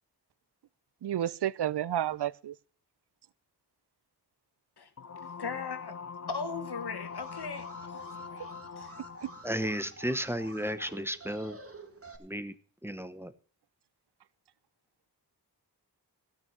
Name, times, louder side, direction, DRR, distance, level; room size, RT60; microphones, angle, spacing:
voice 1, 1.0-2.6 9.2-9.3, right 11 dB, 85° right, 0.5 m, -31 dB
sound 1, 5.0-9.5, left 6 dB, 45° left, 0.7 m, -43 dB
voice 2, 5.4-6.0 6.3-8.0 8.3-9.0, left 5 dB, 80° left, 1.6 m, -38 dB
Alarm, 7.0-12.2, right 2 dB, 35° right, 2.1 m, -49 dB
voice 3, 9.4-11.6 12.2-12.5 12.8-13.3, equal, 5° right, 1.0 m, -33 dB
15.5 x 6.1 x 6.7 m
wide cardioid pair, 70°, 39 cm